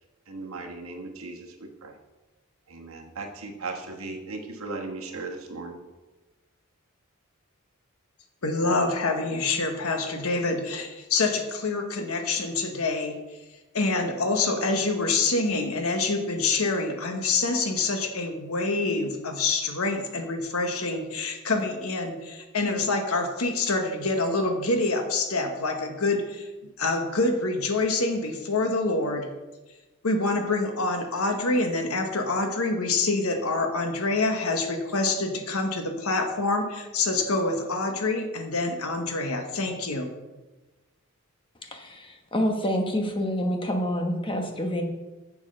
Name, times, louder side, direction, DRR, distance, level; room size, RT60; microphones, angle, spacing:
voice 1, 0.3-1.9 2.7-5.8, right 3 dB, 75° right, 2 dB, 1.4 m, -37 dB
voice 2, 8.4-13.2 13.7-26.5 26.8-29.3 30.0-40.1, left 3 dB, 85° left, 5 dB, 1.2 m, -26 dB
voice 3, 41.6-44.8, equal, 25° left, 4 dB, 1.1 m, -27 dB
7.3 x 7.2 x 5.4 m, 1.1 s
head